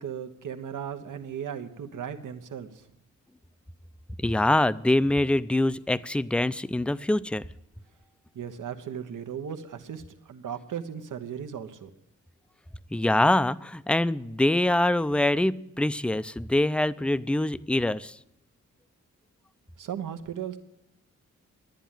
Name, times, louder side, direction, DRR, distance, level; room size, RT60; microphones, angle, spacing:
voice 1, 0.0-2.7 8.3-11.9 19.8-20.6, right 8 dB, 85° right, 8 dB, 1.2 m, -36 dB
voice 2, 4.2-7.4 12.9-18.2, left 1 dB, 5° left, 16 dB, 0.4 m, -24 dB
11.5 x 10.5 x 9.1 m, 0.85 s
cardioid pair, 85°, 31 cm